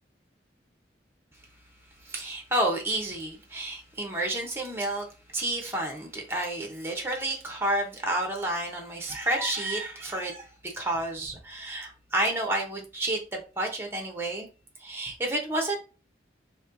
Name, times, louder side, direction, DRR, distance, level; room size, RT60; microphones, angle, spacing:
voice 1, 2.0-5.1 5.3-14.5 14.8-15.8, right 1 dB, 15° right, 2 dB, 0.9 m, -30 dB
3.1 x 2.8 x 3.9 m, 0.33 s
head